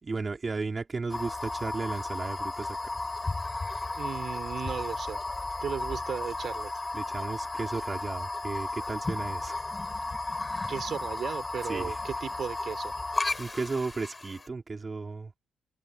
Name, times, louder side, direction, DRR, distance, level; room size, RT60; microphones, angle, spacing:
voice 1, 0.0-2.8 6.9-9.6 11.7-11.9 13.4-15.3, right 4 dB, 30° right, 4.7 m, -34 dB
sound 1, 1.1-14.5, left 2 dB, 20° left, 4.2 m, -34 dB
voice 2, 4.0-5.2 5.6-6.7 10.7-12.9, right 7 dB, 55° right, 5.3 m, -35 dB
open air
cardioid pair, 90°, 0 cm